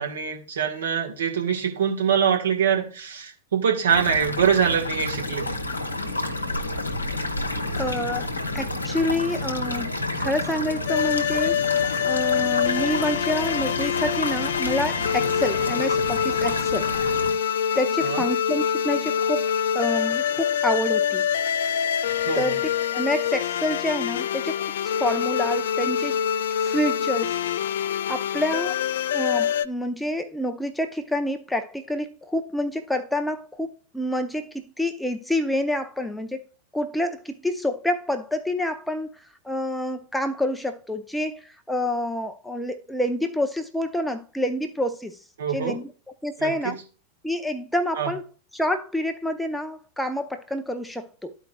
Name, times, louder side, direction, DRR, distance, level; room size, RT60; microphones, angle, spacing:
voice 1, 0.0-5.5 18.0-18.2 22.2-22.6 45.4-45.8 46.4-46.7 48.0-48.1, right 7 dB, 65° right, 1.4 m, -24 dB
sound 1, 3.9-17.3, left 1 dB, 80° left, 0.9 m, -30 dB
voice 2, 7.8-8.3 8.5-9.9 10.2-11.7 12.0-16.9 17.7-21.3 22.3-22.6 22.9-26.2 26.6-27.3 28.1-28.8 29.1-36.5 36.7-45.2 45.5-45.9 46.2-46.8 47.2-48.2 48.5-51.4, left 1 dB, 5° left, 0.6 m, -28 dB
sound 2, 10.9-29.7, left 8 dB, 60° left, 0.3 m, -25 dB
13.0 x 4.6 x 2.3 m
figure-of-eight pair, 90°, 0 cm